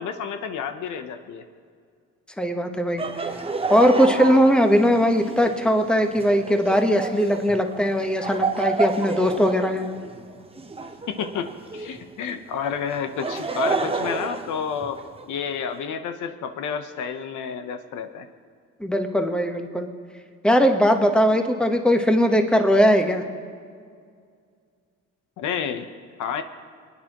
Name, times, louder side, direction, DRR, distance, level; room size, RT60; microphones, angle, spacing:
voice 1, 0.0-1.5 11.1-18.3 25.4-25.9 26.2-26.4, left 7 dB, 80° left, 8 dB, 0.8 m, -30 dB
voice 2, 2.4-3.0 3.7-9.9 18.8-19.9 20.4-23.2, equal, 5° left, 5 dB, 1.0 m, -19 dB
Laughter, 3.0-12.0 12.9-15.2, right 3 dB, 20° right, 0.8 m, -30 dB
25.0 x 9.6 x 2.9 m, 2.1 s
cardioid pair, 90°, 30 cm